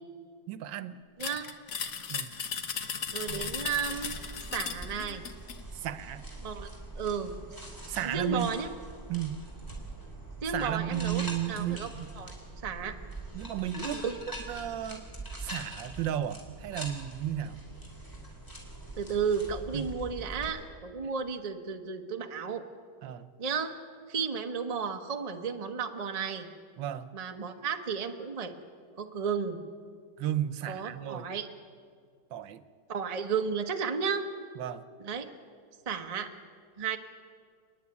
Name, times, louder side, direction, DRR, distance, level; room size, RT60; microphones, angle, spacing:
voice 1, 0.5-1.0 2.1-2.3 5.7-6.2 7.9-8.5 9.1-9.4 10.5-12.1 13.3-14.1 14.5-15.0 15.4-17.6 19.7-19.9 23.0-23.3 26.8-27.1 30.2-31.3 32.3-32.6 34.6-34.8, right 11 dB, 80° right, 14 dB, 1.5 m, -34 dB
sound 1, 1.2-5.6, left 6 dB, 50° left, 1.4 m, -36 dB
voice 2, 1.2-1.5 3.1-4.2 4.5-5.2 6.4-6.7 7.0-7.3 8.0-8.7 10.4-11.9 12.1-12.4 12.6-12.9 13.9-14.1 19.0-22.6 23.4-23.7 24.1-26.5 27.1-28.5 29.0-29.6 30.7-31.5 32.9-34.3 35.0-35.3 35.9-36.3 36.8-37.0, right 6 dB, 25° right, 5 dB, 0.9 m, -33 dB
sound 2, 3.3-20.5, right 2 dB, 10° left, 3.9 m, -43 dB
29.5 x 10.0 x 9.7 m, 2.1 s
omnidirectional pair, 2.0 m